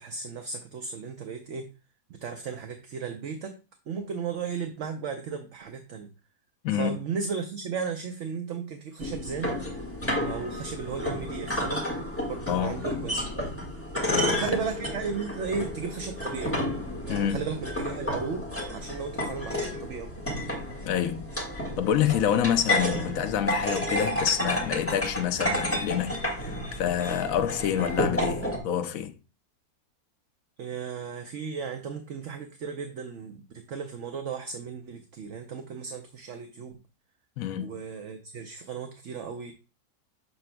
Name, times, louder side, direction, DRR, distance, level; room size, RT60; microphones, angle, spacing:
voice 1, 0.0-1.7 2.1-3.5 3.9-6.1 6.7-9.8 10.2-11.8 12.3-13.5 14.4-16.6 17.0-18.4 18.7-20.1 30.6-36.8 37.6-39.5, right 5 dB, 60° right, 0.9 m, -35 dB
sound 1, 9.0-28.6, left 1 dB, 10° left, 1.5 m, -31 dB
voice 2, 12.5-12.8 14.1-14.5 17.1-17.4 20.8-21.3 21.8-29.2 37.4-37.8, left 9 dB, 70° left, 1.0 m, -27 dB
6.8 x 6.7 x 2.2 m
omnidirectional pair, 1.6 m